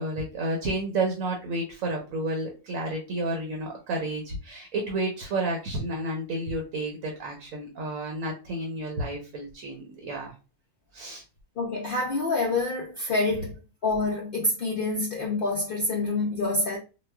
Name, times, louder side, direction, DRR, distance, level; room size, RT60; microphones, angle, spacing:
voice 1, 0.0-10.3 10.9-11.2, right 2 dB, 80° right, 1.2 m, -31 dB
voice 2, 11.6-13.5 13.8-16.8, left 2 dB, 55° left, 0.6 m, -27 dB
4.1 x 2.3 x 2.2 m
omnidirectional pair, 1.4 m